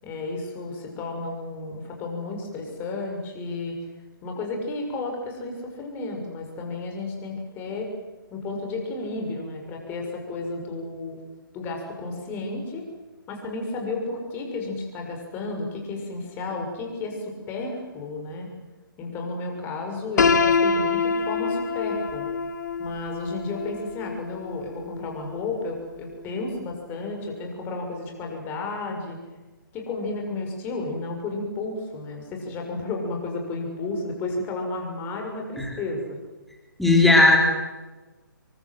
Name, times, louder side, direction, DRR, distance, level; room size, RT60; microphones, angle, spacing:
voice 1, 0.0-3.8 4.2-7.9 8.3-11.2 11.5-12.9 13.3-18.5 19.0-22.3 22.8-29.2 29.7-36.2, left 3 dB, 20° left, 2 dB, 6.4 m, -32 dB
Piano, 20.2-26.0, left 5 dB, 55° left, 2.2 m, -26 dB
voice 2, 36.8-37.4, left 2 dB, ahead, -1 dB, 3.8 m, -16 dB
28.0 x 23.5 x 7.8 m, 1.2 s
figure-of-eight pair, 145°, 12 cm